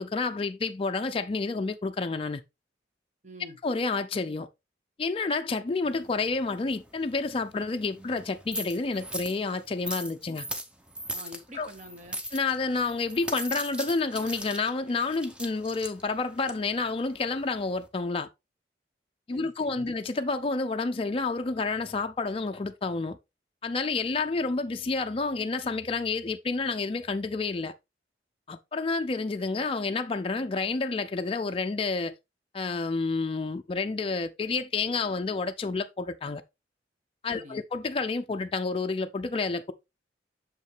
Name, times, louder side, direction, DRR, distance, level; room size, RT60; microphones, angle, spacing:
voice 1, 0.0-2.4 3.6-4.5 5.0-10.4 11.6-11.7 12.3-18.3 19.3-23.2 23.6-27.7 28.5-32.1 32.5-36.4 37.2-39.7, left 3 dB, 30° left, 0.4 m, -29 dB
voice 2, 3.2-3.6 11.1-12.2 19.3-19.9 37.3-37.6, equal, 40° right, 1.3 m, -46 dB
sound 1, 5.8-17.9, equal, 5° right, 0.7 m, -40 dB
6.5 x 5.2 x 3.2 m
head